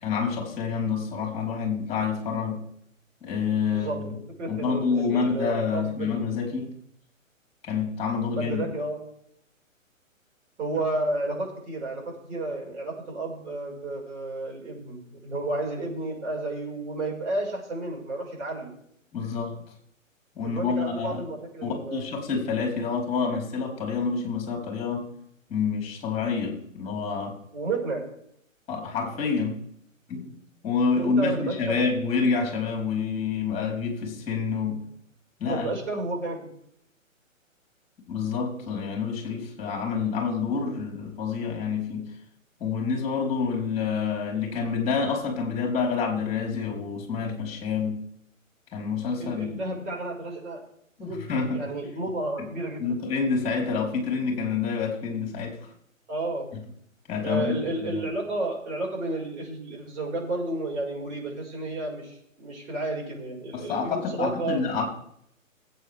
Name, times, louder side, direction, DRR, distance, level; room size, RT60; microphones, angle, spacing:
voice 1, 0.0-2.6 3.2-4.1 4.5-6.7 7.6-8.6 19.1-19.5 20.3-21.2 21.6-25.1 25.5-27.4 28.7-29.5 30.1-30.3 30.6-34.8 35.4-35.7 38.1-42.1 42.6-48.0 48.7-49.6 51.0-51.7 52.8-55.6 57.1-58.0 63.5-64.8, left 5 dB, 15° left, 1 dB, 4.4 m, -28 dB
voice 2, 3.7-6.4 8.3-9.0 10.6-18.7 20.4-22.1 27.5-28.1 31.0-31.9 35.5-36.4 49.2-50.6 51.0-53.0 56.1-56.5 57.2-64.6, right 2 dB, 55° right, -1 dB, 6.0 m, -32 dB
20.0 x 8.4 x 3.7 m, 0.69 s
figure-of-eight pair, 135°, 40 cm